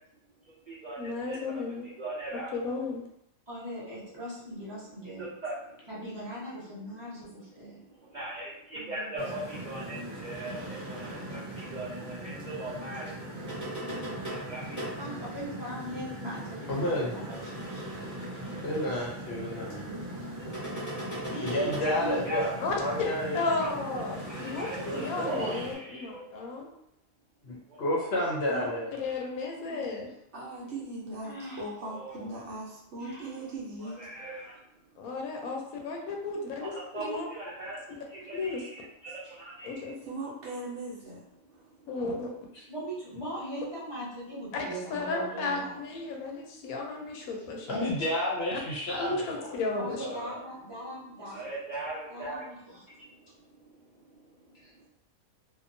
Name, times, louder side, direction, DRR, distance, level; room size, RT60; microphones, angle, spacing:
voice 1, 0.4-2.5 5.2-5.9 7.6-13.9 14.2-15.0 21.1-21.2 21.8-21.9 22.3-22.4 23.6-24.0 24.3-26.2 26.6-26.8 27.7-27.8 31.8-32.3 33.8-34.6 36.6-39.9 41.6-41.9 46.5-46.7 51.3-52.5 52.9-54.9, right 2 dB, 85° right, -8 dB, 0.3 m, -40 dB
voice 2, 1.0-1.9 2.3-3.0 22.6-23.1 23.3-24.7 24.9-26.7 28.5-30.1 35.0-37.3 38.2-38.6 39.6-39.9 41.9-42.3 44.5-47.8 48.5-48.6 48.9-50.1, left 3 dB, 85° left, 0 dB, 1.1 m, -34 dB
voice 3, 3.5-5.2 5.9-7.8 8.7-9.5 14.9-18.0 19.7-20.5 21.3-22.2 29.5-30.0 31.2-31.6 33.0-33.3 42.7-45.8 49.8-51.4 52.1-52.8, right 1 dB, 20° right, -10 dB, 0.9 m, -40 dB
sound 1, 9.2-25.7, right 1 dB, 15° left, 0.8 m, -39 dB
voice 4, 16.7-17.2 18.6-19.9 21.4-22.5 22.8-23.4 24.8-25.2 27.4-28.9 47.7-49.5 50.0-50.4, left 1 dB, 55° left, -4 dB, 0.8 m, -30 dB
voice 5, 30.3-31.3 31.6-34.0 40.0-41.2 41.5-41.6, right 2 dB, 60° right, -5 dB, 1.0 m, -39 dB
2.8 x 2.2 x 2.5 m, 0.77 s
omnidirectional pair, 1.5 m